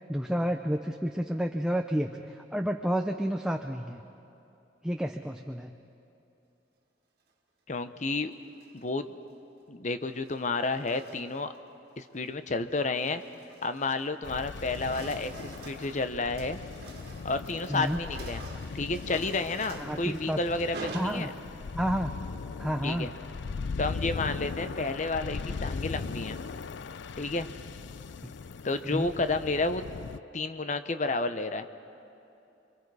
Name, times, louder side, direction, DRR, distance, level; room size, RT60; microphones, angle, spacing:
voice 1, 0.1-4.0 4.8-5.8 17.7-18.0 19.8-20.4 20.9-21.3 21.7-22.1 22.6-23.1 28.2-28.3 28.9-29.1, equal, 5° right, 4 dB, 0.6 m, -30 dB
voice 2, 7.7-8.3 8.7-9.1 9.7-11.5 12.0-13.2 13.6-16.6 17.2-18.4 18.7-21.3 22.8-23.1 23.8-26.4 27.2-27.5 28.6-29.8 30.3-31.7, left 3 dB, 40° left, 10 dB, 0.8 m, -31 dB
sound 1, 8.4-8.9 10.0-11.6 12.0-12.3 12.8-14.2 14.5-21.8, right 2 dB, 55° right, 2.0 m, -46 dB
sound 2, 14.2-30.2, left 4 dB, 75° left, 0.5 m, -39 dB
26.5 x 24.0 x 4.8 m, 2.8 s
head